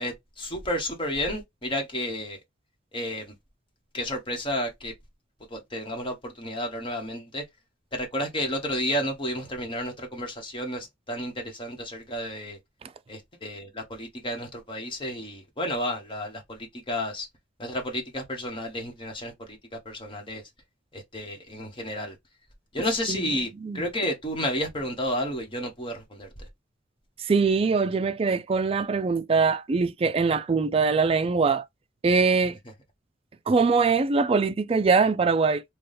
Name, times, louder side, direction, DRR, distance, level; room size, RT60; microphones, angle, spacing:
voice 1, 0.0-2.4 2.9-3.3 3.9-4.9 5.5-7.4 7.9-12.6 13.1-17.3 17.6-20.4 20.9-22.2 22.7-26.5, equal, 25° left, 1.1 m, -31 dB
voice 2, 27.2-31.6 32.0-32.6 33.5-35.6, right 4 dB, 30° right, 0.3 m, -22 dB
4.0 x 2.3 x 3.3 m
head